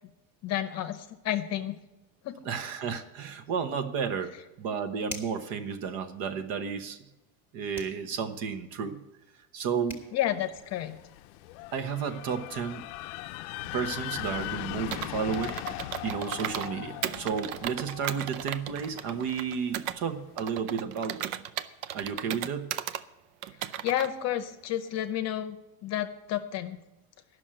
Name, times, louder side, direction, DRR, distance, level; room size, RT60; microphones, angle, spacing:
voice 1, 0.4-1.8 2.2-2.4 10.1-10.9 23.8-26.8, left 12 dB, 40° left, 10 dB, 0.7 m, -31 dB
voice 2, 2.4-7.0 7.5-9.0 9.5-10.0 11.7-12.8 13.7-15.6 16.0-21.2 21.9-22.7, right 6 dB, 55° right, 9 dB, 1.1 m, -32 dB
sound 1, 5.1-5.5 7.7-8.0 9.5-9.6 9.9-10.1, left 1 dB, 5° right, 1.4 m, -41 dB
sound 2, 10.3-20.1, left 17 dB, 75° left, 0.5 m, -40 dB
Computer keyboard, 14.9-16.7 17.0-20.0 20.4-23.0 23.4-24.1, right 11 dB, 80° right, 0.7 m, -36 dB
11.0 x 6.3 x 8.8 m, 0.96 s
cardioid pair, 155°, 41 cm